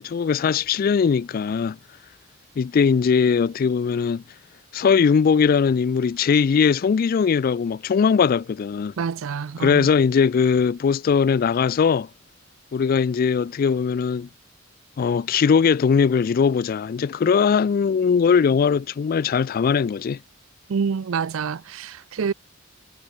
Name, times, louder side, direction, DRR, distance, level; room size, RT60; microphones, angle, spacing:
voice 1, 0.0-1.8 2.6-4.2 4.7-8.9 9.6-12.1 12.7-14.3 15.0-20.2, left 6 dB, 45° left, 0.3 m, -20 dB
voice 2, 9.0-9.9 20.7-22.3, right 6 dB, 80° right, 0.5 m, -27 dB
head